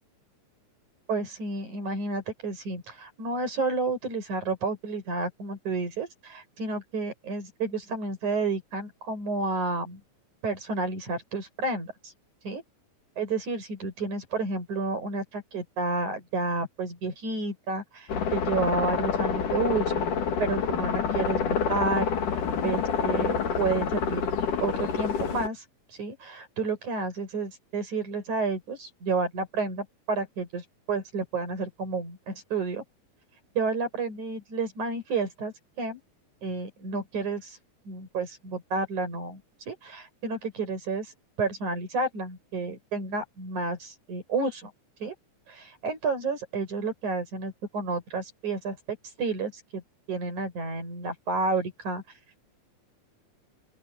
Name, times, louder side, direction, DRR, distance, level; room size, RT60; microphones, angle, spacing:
voice 1, 1.1-10.0 10.4-12.1 12.4-12.6 13.2-20.1 20.4-22.1 22.6-24.3 24.6-25.6 26.0-32.8 33.6-36.0 36.4-37.6 37.8-39.4 39.7-41.1 41.4-44.7 45.0-45.1 45.5-49.8 50.1-52.0, right 3 dB, 70° right, 8.1 m, -31 dB
sound 1, 18.1-25.5, left 6 dB, 90° left, 4.1 m, -27 dB
open air
omnidirectional pair, 3.5 m